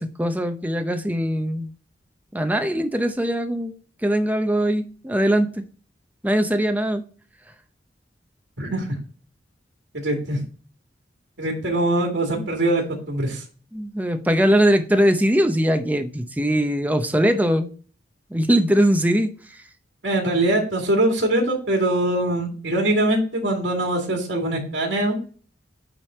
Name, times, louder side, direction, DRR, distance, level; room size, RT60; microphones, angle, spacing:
voice 1, 0.0-1.7 2.3-3.7 4.0-5.6 6.2-7.0 12.3-12.5 13.7-17.7 18.3-19.3, equal, 10° right, 0.6 m, -21 dB
voice 2, 8.6-8.9 9.9-10.4 11.4-13.4 20.0-25.2, right 1 dB, 70° right, 2.0 m, -22 dB
8.9 x 3.3 x 4.2 m
head